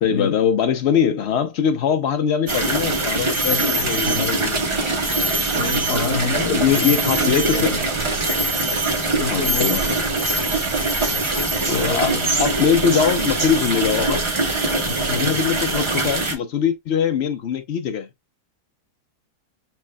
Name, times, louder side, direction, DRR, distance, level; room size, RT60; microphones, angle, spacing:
voice 1, 0.0-4.6 6.4-7.7 9.3-10.0 11.2-14.2 15.1-18.1, left 8 dB, 60° left, 0.7 m, -22 dB
sound 1, 2.5-16.3, right 2 dB, 25° right, 0.7 m, -22 dB
voice 2, 3.5-4.4 5.6-7.8 9.1-9.8 11.7-12.3 14.9-15.4, left 3 dB, 85° left, 2.2 m, -28 dB
5.9 x 3.5 x 2.2 m
omnidirectional pair, 1.7 m